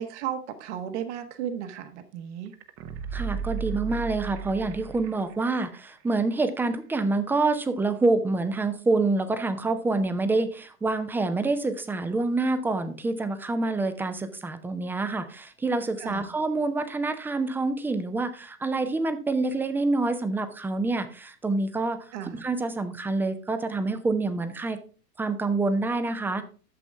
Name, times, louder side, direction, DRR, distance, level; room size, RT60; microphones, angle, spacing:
voice 1, 0.0-2.5 16.0-16.3 22.1-22.5, right 9 dB, 45° right, 9 dB, 1.3 m, -34 dB
sound 1, 2.5-5.4 5.7-5.8, right 6 dB, 30° right, 1.0 m, -34 dB
voice 2, 3.1-22.0 22.3-24.8 25.2-26.4, right 3 dB, 5° right, 10 dB, 0.6 m, -27 dB
11.5 x 7.3 x 3.4 m, 0.38 s
figure-of-eight pair, 95°, 47 cm